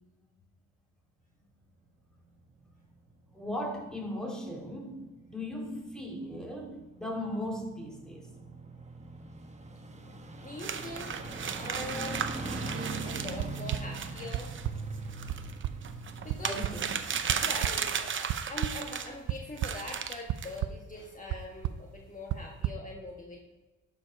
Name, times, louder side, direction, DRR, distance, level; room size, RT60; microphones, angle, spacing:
sound 1, 1.9-18.4 18.8-18.9, right 3 dB, 25° right, 1.1 m, -43 dB
voice 1, 3.3-8.3 16.4-16.8, left 1 dB, ahead, -1 dB, 2.4 m, -37 dB
voice 2, 10.3-11.1 11.5-14.5 16.2-16.7 17.3-23.4, left 2 dB, 25° left, -1 dB, 1.4 m, -43 dB
sound 2, 10.6-19.1 19.6-20.6, right 7 dB, 40° right, 0.8 m, -35 dB
sound 3, 13.4-13.8 14.3-14.7 15.3-15.4 15.6-15.7 16.3-16.4 16.6-16.7 17.3-17.7 18.3-18.7 19.3-19.8 20.3-20.7 21.3-21.4 21.6-21.8 22.3-22.7, right 15 dB, 80° right, 0.5 m, -31 dB
12.0 x 5.0 x 5.2 m, 1.2 s
cardioid pair, 90°, 30 cm